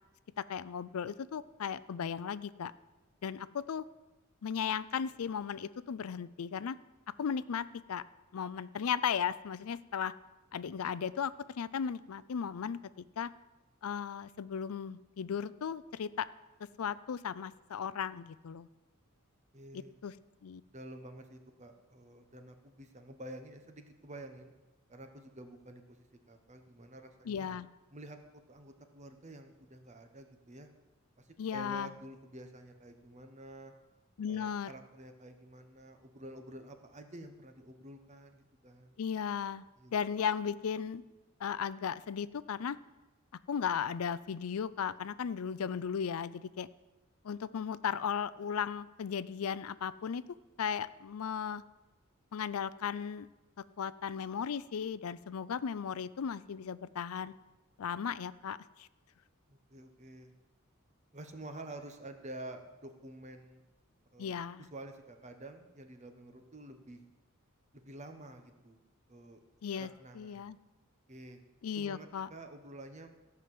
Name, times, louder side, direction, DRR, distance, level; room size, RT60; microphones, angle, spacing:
voice 1, 0.4-2.7 3.2-3.8 4.4-6.8 7.2-8.0 8.3-10.1 10.5-12.8 13.2-13.3 13.8-16.3 16.8-18.7 19.7-20.1 20.4-20.6 27.3-27.7 31.4-31.9 34.2-34.7 39.0-39.6 39.9-41.0 41.4-42.8 43.5-46.7 47.2-50.2 50.6-51.6 52.3-53.3 53.8-57.3 57.8-58.9 64.2-64.7 69.6-69.9 70.1-70.6 71.6-72.3, left 7 dB, 85° left, 16 dB, 0.4 m, -36 dB
voice 2, 19.5-20.0 20.7-24.5 24.9-27.5 27.9-28.2 28.5-30.7 31.2-33.7 34.3-39.0 39.8-39.9 59.5-60.3 61.1-63.6 64.1-67.0 67.7-68.8 69.1-69.4 69.7-70.5 71.1-71.4 71.7-73.1, right 1 dB, 35° right, 6 dB, 1.1 m, -49 dB
14.0 x 5.9 x 7.7 m, 1.1 s
head